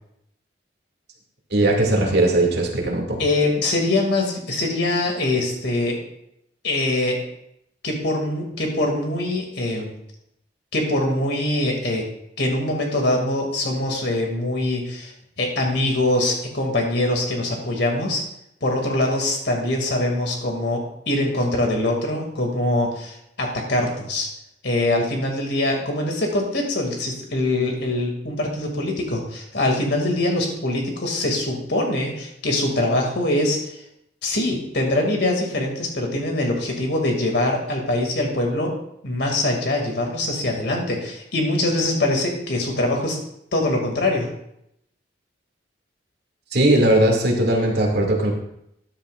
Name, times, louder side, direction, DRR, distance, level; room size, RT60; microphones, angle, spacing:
voice 1, 1.5-3.2 46.5-48.3, right 1 dB, 60° right, 0 dB, 2.4 m, -19 dB
voice 2, 3.2-6.0 6.6-7.2 7.8-9.9 10.7-12.1 12.4-18.2 18.6-24.3 24.6-33.8 34.2-38.7 39.0-43.2 43.5-44.3, left 1 dB, 65° left, 1 dB, 2.4 m, -23 dB
13.0 x 10.0 x 2.5 m, 0.77 s
head